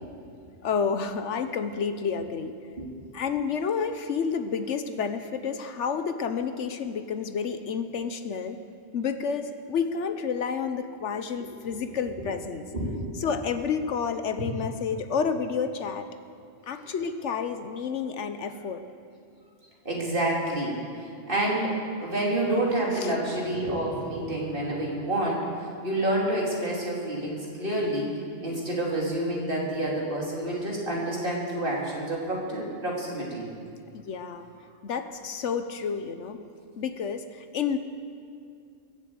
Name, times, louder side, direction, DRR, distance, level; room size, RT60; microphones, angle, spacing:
voice 1, 0.6-2.6 3.1-8.6 8.9-12.6 13.2-16.1 16.7-18.8 22.9-23.1 33.9-34.5 34.8-36.4 36.8-37.8, left 6 dB, 70° left, 9 dB, 1.1 m, -30 dB
voice 2, 12.7-13.1 19.8-20.7 21.3-25.5 25.8-28.1 28.4-33.5, right 1 dB, 40° right, -3 dB, 3.0 m, -28 dB
22.0 x 8.1 x 7.8 m, 2.3 s
omnidirectional pair, 1.3 m